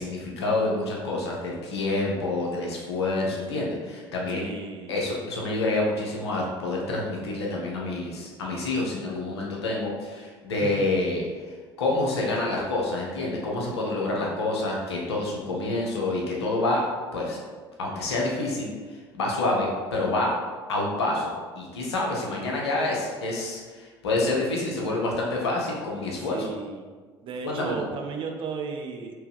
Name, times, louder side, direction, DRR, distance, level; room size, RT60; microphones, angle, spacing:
voice 1, 0.0-4.5 4.9-16.8 17.1-17.4 17.8-18.7 19.1-20.3 20.7-26.5 27.4-27.9, left 2 dB, 75° left, -2 dB, 0.8 m, -28 dB
voice 2, 4.3-5.0 10.6-10.8 26.2-26.9 27.2-29.1, right 5 dB, 40° right, 2 dB, 0.5 m, -35 dB
3.4 x 2.9 x 3.3 m, 1.5 s
figure-of-eight pair, 60°, 14 cm